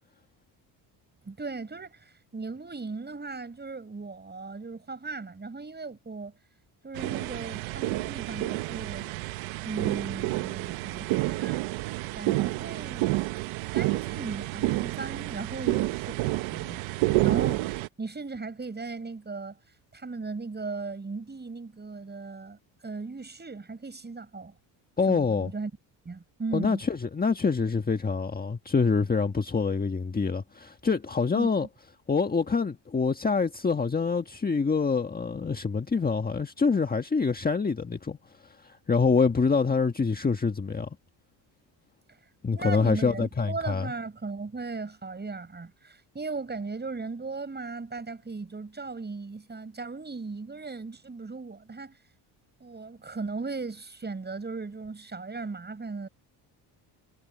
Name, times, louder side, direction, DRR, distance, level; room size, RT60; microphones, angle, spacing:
voice 1, 1.3-6.3 6.8-9.1 9.6-11.7 12.1-13.1 13.7-16.8 17.2-19.6 19.9-24.5 25.1-25.7 26.1-26.8 31.3-31.5 42.5-52.0 52.6-56.1, right 4 dB, 20° right, 7.1 m, -37 dB
sound 1, 6.9-17.9, right 19 dB, 85° right, 1.1 m, -29 dB
voice 2, 25.0-25.5 26.5-31.7 32.1-38.2 38.4-40.9 42.4-43.9, left 4 dB, 20° left, 1.5 m, -26 dB
cardioid pair, 105°, 46 cm